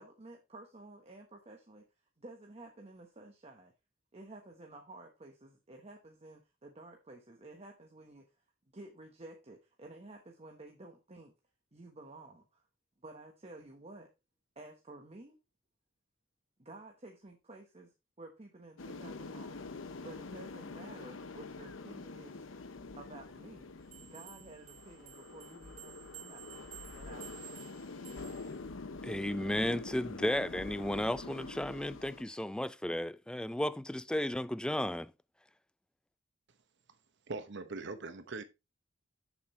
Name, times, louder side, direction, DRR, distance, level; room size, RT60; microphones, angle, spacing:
voice 1, 0.0-1.9 2.2-3.7 4.1-8.3 8.7-11.3 11.7-12.6 13.0-14.1 14.6-15.4 16.6-19.6 20.0-22.4 23.0-23.7 24.0-26.5 26.9-27.6, right 2 dB, 35° right, 1.1 m, -52 dB
sound 1, 18.8-32.2, left 3 dB, 85° left, 0.8 m, -46 dB
sound 2, 23.9-28.6, right 14 dB, 90° right, 2.5 m, -53 dB
voice 2, 29.0-35.1, left 1 dB, 5° left, 0.3 m, -34 dB
voice 3, 37.3-38.4, right 3 dB, 65° right, 0.9 m, -41 dB
7.6 x 7.2 x 3.2 m
head